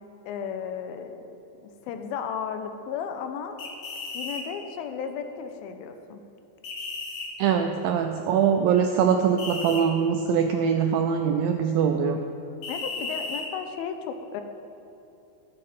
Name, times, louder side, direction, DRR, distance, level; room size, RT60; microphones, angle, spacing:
voice 1, 0.3-1.4 1.6-3.6 4.1-6.2 12.7-14.4, left 7 dB, 80° left, 7 dB, 2.4 m, -34 dB
sound 1, 3.6-4.4 6.6-7.3 9.4-9.8 12.6-13.5, left 3 dB, 55° left, 2.3 m, -34 dB
voice 2, 7.4-12.2, right 7 dB, 85° right, 5 dB, 2.0 m, -23 dB
18.5 x 7.6 x 4.2 m, 3.0 s
omnidirectional pair, 4.7 m